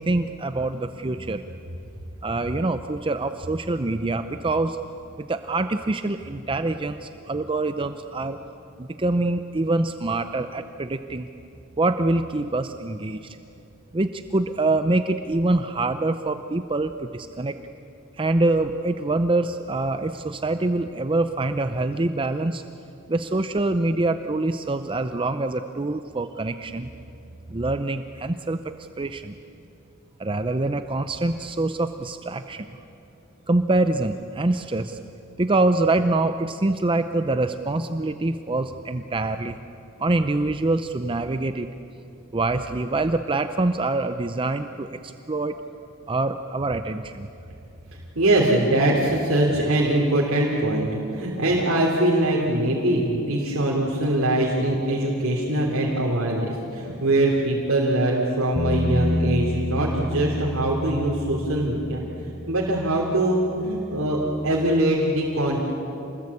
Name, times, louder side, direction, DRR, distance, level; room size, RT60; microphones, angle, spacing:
voice 1, 0.0-1.4 2.2-4.8 5.2-8.4 8.8-11.3 11.8-13.4 13.9-17.6 18.2-22.6 23.1-26.9 27.5-28.6 29.0-29.4 30.2-32.7 33.5-35.0 35.4-39.6 40.0-41.7 42.3-45.6 46.1-47.3, right 2 dB, 25° right, 8 dB, 0.6 m, -25 dB
voice 2, 48.1-65.7, right 1 dB, 70° right, -3 dB, 3.2 m, -22 dB
Bass guitar, 58.6-64.8, left 1 dB, 10° left, 4.2 m, -30 dB
27.5 x 20.5 x 8.4 m, 2.7 s
head